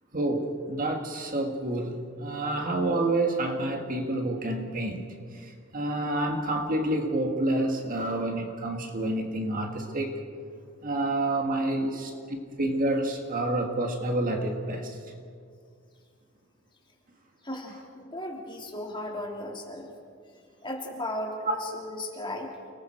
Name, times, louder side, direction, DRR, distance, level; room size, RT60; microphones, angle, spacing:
voice 1, 0.1-10.2 10.8-15.0 21.5-21.6, right 1 dB, 40° right, 3 dB, 1.9 m, -28 dB
voice 2, 17.4-19.9 20.6-22.5, left 1 dB, 25° left, -1 dB, 3.1 m, -36 dB
29.5 x 19.5 x 4.5 m, 2.2 s
head